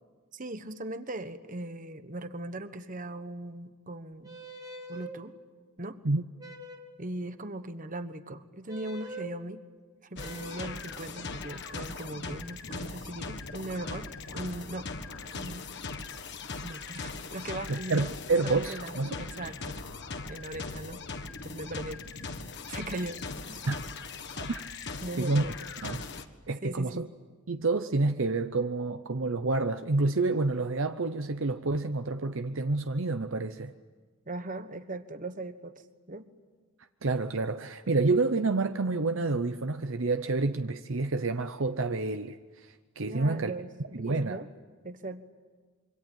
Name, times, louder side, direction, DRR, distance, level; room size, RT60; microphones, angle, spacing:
voice 1, 0.3-4.4 4.9-5.4 5.8-6.0 7.0-9.6 10.1-14.9 15.3-15.7 16.6-18.1 18.4-19.8 20.3-21.0 21.4-22.0 22.7-23.2 23.5-23.6 25.0-25.7 26.6-27.1 34.3-35.8 36.1-36.3 43.1-44.5 44.8-45.2, right 2 dB, 35° right, 1.3 m, -39 dB
sound 1, 4.2-5.2 6.4-7.0 8.7-9.3 10.2-10.8, right 1 dB, 15° right, 1.8 m, -43 dB
sound 2, 10.2-26.2, left 4 dB, 50° left, 1.5 m, -40 dB
voice 2, 17.7-19.2 23.7-23.8 24.4-24.6 25.2-25.4 25.8-26.0 26.5-27.1 27.5-33.7 37.0-43.5 44.0-44.4, right 3 dB, 60° right, 0.8 m, -28 dB
26.5 x 24.5 x 9.2 m
head